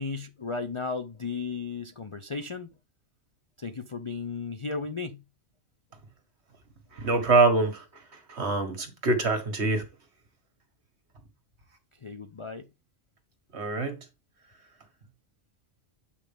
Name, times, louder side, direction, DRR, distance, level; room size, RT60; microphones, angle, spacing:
voice 1, 0.0-2.7 3.6-5.2 12.0-12.7, left 4 dB, 40° left, 0.4 m, -35 dB
voice 2, 7.0-7.8 8.3-9.8 13.5-14.0, right 3 dB, 60° right, 2.0 m, -24 dB
8.2 x 5.7 x 3.5 m
omnidirectional pair, 1.3 m